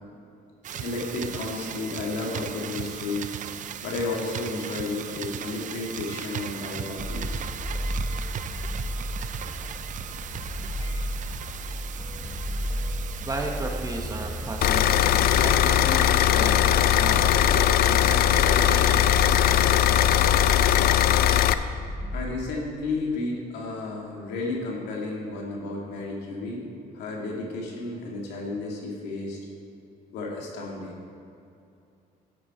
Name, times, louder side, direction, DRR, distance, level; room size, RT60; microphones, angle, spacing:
sound 1, 0.6-15.6, right 9 dB, 50° right, 0.5 m, -37 dB
voice 1, 0.7-3.3 3.8-7.4 22.1-26.6 26.9-29.4 30.1-31.0, left 3 dB, 85° left, -2 dB, 2.5 m, -32 dB
sound 2, 7.0-22.2, equal, 20° left, 1.5 m, -33 dB
voice 2, 13.2-19.3, right 2 dB, 20° right, 1 dB, 1.5 m, -35 dB
sound 3, 14.6-21.5, left 11 dB, 65° left, 0.5 m, -20 dB
12.0 x 8.3 x 4.4 m, 2.6 s
cardioid pair, 110°, 17 cm